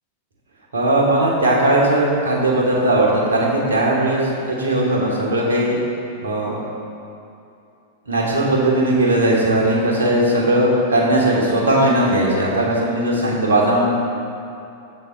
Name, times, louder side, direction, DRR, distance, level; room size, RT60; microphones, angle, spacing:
voice 1, 0.7-5.8 6.2-6.6 8.1-13.9, right 1 dB, 70° right, -3 dB, 1.1 m, -18 dB
6.8 x 3.9 x 4.3 m, 2.7 s
figure-of-eight pair, 95°, 0 cm